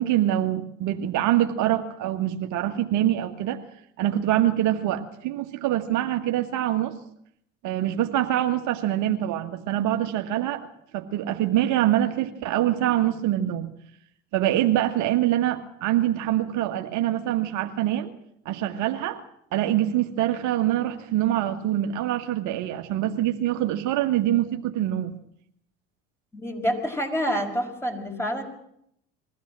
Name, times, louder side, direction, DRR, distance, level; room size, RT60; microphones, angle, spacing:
voice 1, 0.0-3.6 4.0-7.0 7.6-10.7 10.9-13.7 14.3-18.1 18.5-19.2 19.5-25.1, right 13 dB, 65° right, 6 dB, 1.8 m, -24 dB
voice 2, 26.3-28.4, equal, 10° left, 3 dB, 5.6 m, -27 dB
22.0 x 15.5 x 7.6 m, 0.71 s
supercardioid pair, 85°, 32 cm